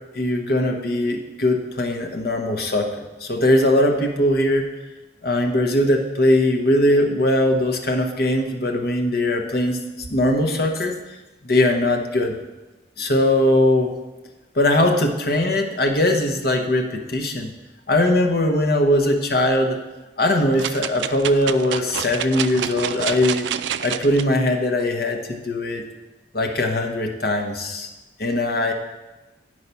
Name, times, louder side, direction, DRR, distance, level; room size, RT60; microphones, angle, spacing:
voice 1, 0.1-2.9 3.2-4.6 5.2-9.8 10.1-11.0 11.4-12.3 13.0-13.9 14.5-17.5 17.9-19.8 20.2-23.5 23.8-25.8 26.3-27.9 28.2-28.7, left 1 dB, 55° left, 3 dB, 1.0 m, -20 dB
sound 1, 20.6-24.2 24.8-24.9, right 9 dB, 75° right, 0.3 m, -28 dB
9.6 x 4.7 x 5.6 m, 1.1 s
head